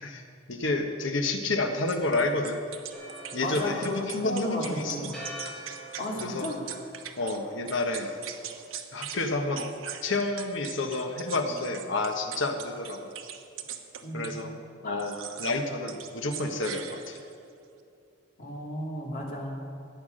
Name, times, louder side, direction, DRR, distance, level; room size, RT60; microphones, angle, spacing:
voice 1, 0.5-2.6 3.3-5.1 6.2-6.5 7.2-8.2 8.9-9.7 10.0-13.1 14.1-14.5 14.8-17.2, left 2 dB, 70° left, 5 dB, 1.3 m, -30 dB
sound 1, 1.9-7.4 7.7-9.2 9.5-14.4 15.0-15.6 15.9-17.4, right 9 dB, 85° right, 1.0 m, -41 dB
Church bell, 2.9-8.7, equal, ahead, 3.1 m, -46 dB
voice 2, 3.4-5.2 6.0-6.6 14.0-14.3 14.8-15.1 18.4-19.6, left 1 dB, 45° left, -2 dB, 2.6 m, -33 dB
14.0 x 9.5 x 6.5 m, 2.6 s
head